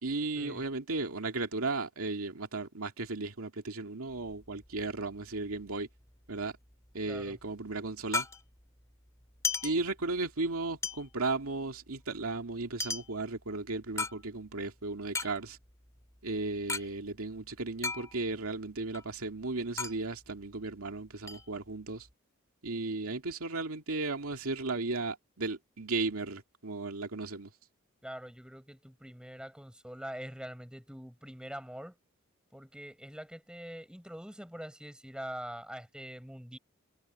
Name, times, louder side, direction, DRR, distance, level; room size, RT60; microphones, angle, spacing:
voice 1, 0.0-5.9 6.3-6.6 6.9-8.3 9.6-15.6 16.2-22.1 22.6-27.5, right 3 dB, 90° right, 2.3 m, -35 dB
sound 1, 4.1-5.8 6.1-6.2 6.4-8.8 9.2-10.4 10.8-14.6 15.0-16.9 17.1-17.2 17.5-18.5 18.8-20.9 21.3-22.1, left 4 dB, 15° left, 2.9 m, -37 dB
voice 2, 7.1-7.4 28.0-31.9 32.5-36.6, equal, 5° right, 4.6 m, -44 dB
head